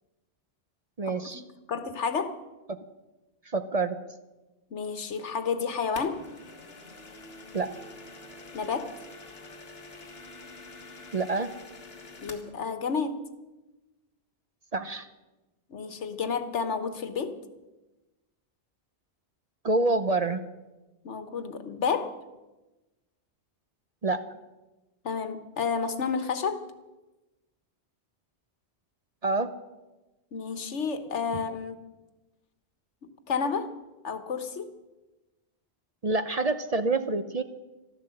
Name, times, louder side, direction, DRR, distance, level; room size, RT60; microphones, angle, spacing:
voice 1, 1.0-1.4 2.7-2.8 3.5-4.0 7.5-7.7 11.1-11.5 14.7-15.1 19.6-20.4 24.0-24.2 29.2-29.5 36.0-37.4, right 3 dB, 40° right, 10 dB, 0.7 m, -27 dB
voice 2, 1.7-2.4 4.7-6.2 8.5-8.9 12.2-13.2 15.7-17.3 21.0-22.2 25.0-26.6 30.3-31.7 33.0-33.7 34.0-34.7, left 5 dB, 90° left, 10 dB, 1.5 m, -30 dB
sound 1, 5.9-12.5, left 2 dB, 60° left, 1.9 m, -46 dB
14.5 x 12.5 x 7.8 m, 1.1 s
omnidirectional pair, 1.2 m